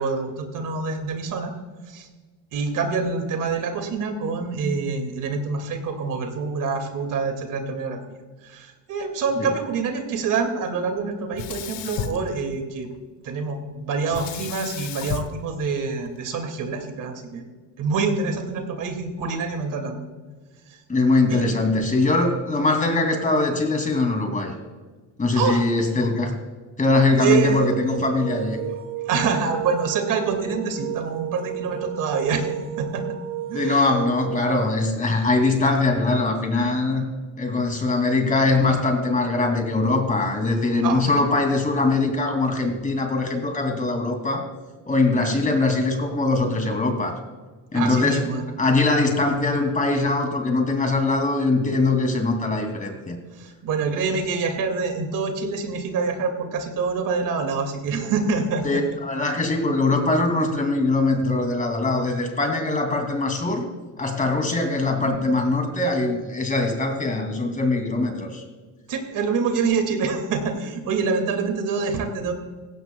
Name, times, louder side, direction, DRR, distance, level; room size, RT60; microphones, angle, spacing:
voice 1, 0.0-1.5 1.9-2.1 2.5-8.2 8.4-12.9 13.2-17.4 17.8-20.0 21.3-21.4 25.4-25.6 27.2-27.7 29.1-32.5 32.8-33.0 33.5-34.0 40.8-41.3 47.7-48.4 53.4-58.8 68.9-72.3, right 5 dB, 60° right, 5 dB, 2.2 m, -26 dB
Sink (filling or washing), 11.3-13.0 14.1-16.4, left 9 dB, 75° left, 1.0 m, -34 dB
voice 2, 20.9-24.5 25.2-26.4 26.8-28.6 33.5-37.1 37.4-44.5 44.9-47.2 47.7-48.3 48.6-53.2 58.6-63.7 64.0-68.4, left 3 dB, 20° left, 4 dB, 2.6 m, -22 dB
sound 1, 27.3-34.4, right 11 dB, 40° right, 2.2 m, -32 dB
16.5 x 16.0 x 2.3 m, 1.4 s
cardioid pair, 115°, 35 cm